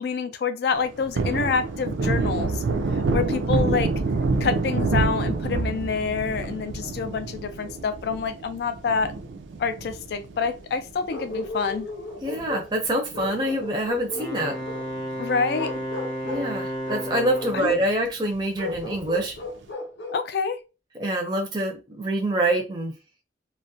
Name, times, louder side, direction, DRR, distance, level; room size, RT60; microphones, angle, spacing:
voice 1, 0.0-2.6 2.9-3.9 4.4-9.1 9.6-11.9 15.2-15.7 17.5-17.7 20.1-20.6, left 5 dB, 60° left, 0.3 m, -27 dB
Thunder, 0.7-11.5 11.8-11.9 12.3-13.8 14.1-14.2 14.6-15.4 15.8-15.9 16.2-16.3 18.7-19.3, right 3 dB, 85° right, 0.4 m, -27 dB
Bark, 11.1-12.7 13.1-14.9 15.5-16.5 16.8-17.8 18.6-20.2, left 2 dB, 85° left, 0.8 m, -35 dB
voice 2, 12.2-14.5 16.3-19.3 21.0-22.9, right 1 dB, 25° right, 0.5 m, -26 dB
Wind instrument woodwind instrument, 14.1-17.9, equal, 25° left, 0.6 m, -32 dB
2.3 x 2.1 x 2.6 m
head